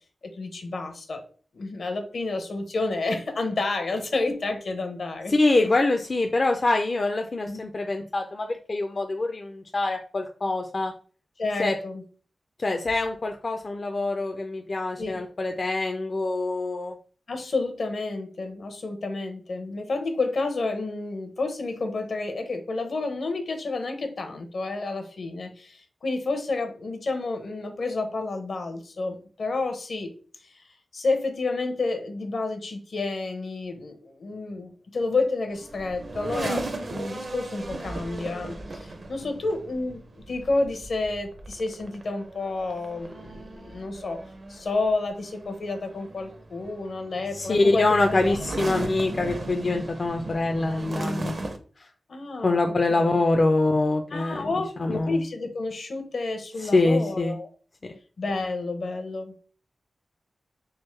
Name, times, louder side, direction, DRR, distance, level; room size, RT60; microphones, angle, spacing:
voice 1, 0.2-1.2 1.5-5.3 7.5-7.7 11.4-12.0 15.0-15.2 17.3-30.1 30.4-30.6 30.9-44.2 44.5-48.4 49.7-49.9 52.1-53.2 54.1-57.5 58.2-59.5, left 3 dB, 70° left, 6 dB, 0.8 m, -30 dB
voice 2, 5.3-10.9 11.6-11.8 12.6-17.0 47.3-51.3 51.8-51.9 52.4-55.3 56.6-57.4 57.8-58.0, left 2 dB, 45° left, 4 dB, 0.4 m, -25 dB
sound 1, 35.5-51.6, right 2 dB, 50° right, 0.5 m, -37 dB
3.5 x 2.9 x 3.2 m, 0.40 s
wide cardioid pair, 100°, 0 cm